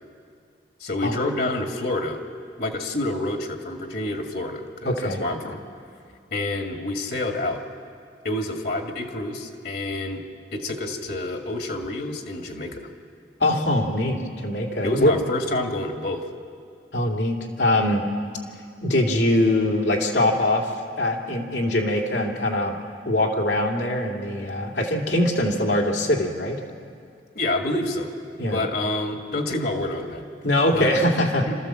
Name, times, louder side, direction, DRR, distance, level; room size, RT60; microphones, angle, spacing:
voice 1, 0.8-2.2 2.6-5.6 6.3-7.6 8.2-10.2 10.5-12.8 14.8-16.3 27.3-28.1 28.5-30.3 30.7-30.9 31.5-31.6, left 2 dB, 60° left, 3 dB, 1.9 m, -28 dB
voice 2, 4.8-5.2 13.4-15.1 16.9-18.1 18.8-22.8 23.0-26.6 28.4-28.6 30.4-31.5, left 1 dB, 80° left, 1 dB, 2.6 m, -22 dB
27.5 x 14.0 x 7.5 m, 2.2 s
head